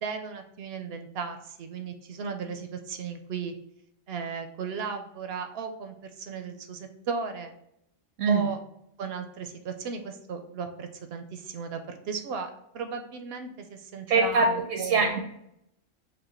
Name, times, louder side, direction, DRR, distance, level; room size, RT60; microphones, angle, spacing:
voice 1, 0.0-3.5 4.1-7.5 8.3-8.6 9.0-15.2, right 5 dB, 65° right, 6 dB, 0.7 m, -36 dB
voice 2, 14.1-15.2, right 4 dB, 80° right, 3 dB, 1.0 m, -23 dB
5.3 x 2.1 x 4.2 m, 0.77 s
omnidirectional pair, 1.3 m